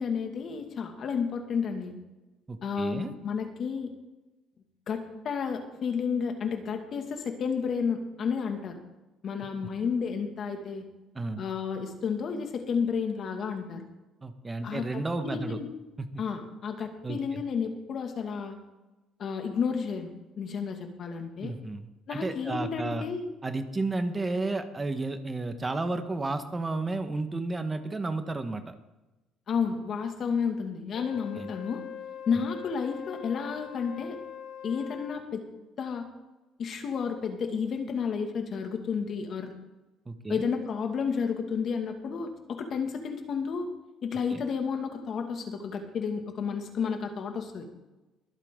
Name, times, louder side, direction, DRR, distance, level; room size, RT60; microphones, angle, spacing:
voice 1, 0.0-2.0 2.6-3.9 4.9-8.8 9.2-10.8 11.4-13.8 14.6-15.7 16.2-18.6 19.2-20.1 20.4-21.5 22.1-23.3 29.5-31.8 32.3-34.2 34.6-35.4 35.8-36.0 36.6-39.5 40.3-43.7 44.0-47.7, left 6 dB, 55° left, 5 dB, 2.1 m, -31 dB
voice 2, 2.5-3.1 11.1-11.4 14.2-15.6 16.0-16.1 17.0-17.4 21.4-23.0 23.4-28.7 31.3-31.5 40.1-40.5 44.3-44.4, right 2 dB, 20° right, 8 dB, 1.4 m, -32 dB
Wind instrument woodwind instrument, 30.9-35.3, left 9 dB, 80° left, 1.4 m, -42 dB
23.5 x 8.3 x 3.8 m, 1.1 s
supercardioid pair, 85°, 0 cm